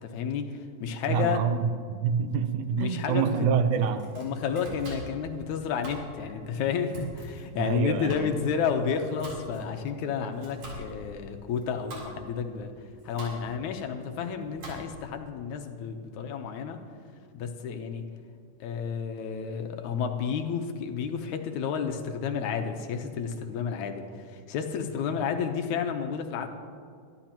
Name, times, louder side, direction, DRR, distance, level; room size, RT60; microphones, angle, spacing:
voice 1, 0.0-1.4 2.7-3.5 4.2-12.7 13.0-16.8 17.3-18.1 18.6-26.5, left 7 dB, 75° left, 2.2 m, -31 dB
voice 2, 1.1-4.1 7.0-7.1 7.6-8.3, right 6 dB, 80° right, 2.1 m, -27 dB
Domestic sounds home sounds, 3.8-15.2, right 1 dB, 60° right, 4.9 m, -45 dB
23.5 x 12.5 x 2.9 m
omnidirectional pair, 3.5 m